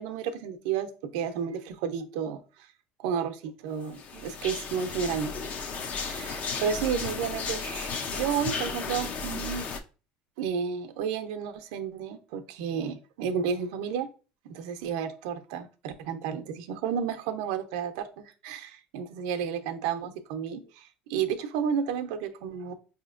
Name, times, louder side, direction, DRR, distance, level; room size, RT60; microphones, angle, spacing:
voice 1, 0.0-2.4 3.0-5.3 5.7-9.7 10.4-14.1 14.5-22.7, right 7 dB, 85° right, 8 dB, 0.5 m, -32 dB
sound 1, 3.9-9.8, left 5 dB, 45° left, 0.5 m, -34 dB
4.9 x 2.8 x 2.4 m, 0.35 s
cardioid pair, 115°, 3 cm